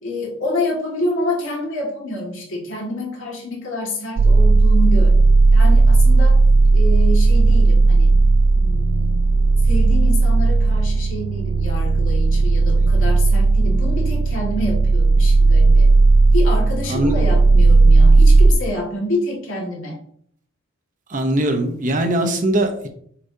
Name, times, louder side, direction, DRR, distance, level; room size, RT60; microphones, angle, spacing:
voice 1, 0.0-5.1 5.5-6.4 6.7-8.1 8.6-9.3 9.6-15.9 16.3-20.0, left 1 dB, 75° left, -2 dB, 2.0 m, -27 dB
sound 1, 4.2-18.5, right 3 dB, 75° right, 0.4 m, -14 dB
voice 2, 21.1-22.9, right 1 dB, 40° right, 5 dB, 0.8 m, -20 dB
7.0 x 5.1 x 2.8 m, 0.64 s
head